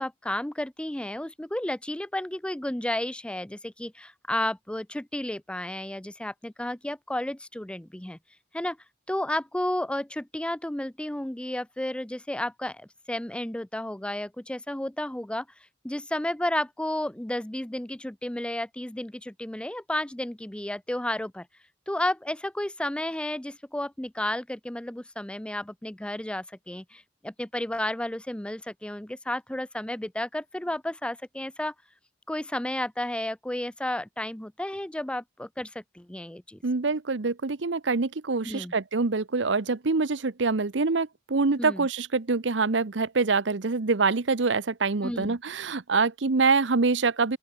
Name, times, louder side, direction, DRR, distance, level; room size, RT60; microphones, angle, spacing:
voice 1, 0.0-8.2 8.5-8.8 9.1-15.5 15.8-21.5 21.9-31.7 32.3-36.6 38.4-38.7 41.6-41.9 45.0-45.4, left 1 dB, 5° left, 0.5 m, -32 dB
voice 2, 36.6-47.4, right 4 dB, 70° right, 0.9 m, -25 dB
open air
head